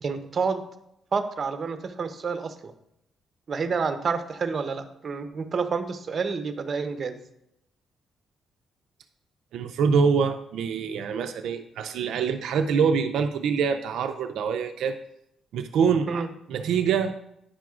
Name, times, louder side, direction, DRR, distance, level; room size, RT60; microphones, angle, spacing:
voice 1, 0.0-0.6 1.1-2.7 3.5-7.2 16.1-16.3, right 5 dB, 45° right, 9 dB, 0.7 m, -29 dB
voice 2, 9.5-15.0 15.5-16.2 16.5-17.1, right 6 dB, 80° right, 7 dB, 0.4 m, -25 dB
9.8 x 5.9 x 2.4 m, 0.79 s
cardioid pair, 105°, 0 cm